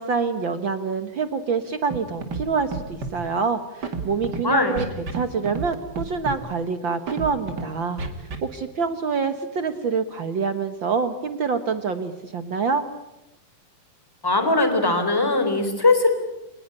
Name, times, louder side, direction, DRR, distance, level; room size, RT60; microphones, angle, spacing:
voice 1, 0.0-4.8 5.1-8.0 8.4-12.8, right 5 dB, 75° right, 9 dB, 1.1 m, -26 dB
Scratching (performance technique), 1.9-2.4 2.7-3.1 3.8-4.4 4.8-5.2 5.5-5.7 5.9-6.4 7.1-7.6 8.0-8.4, right 4 dB, 30° right, 2.5 m, -29 dB
voice 2, 4.4-4.8 14.2-16.1, left 3 dB, 5° left, 7 dB, 3.5 m, -20 dB
26.5 x 19.5 x 9.9 m, 0.92 s
omnidirectional pair, 4.0 m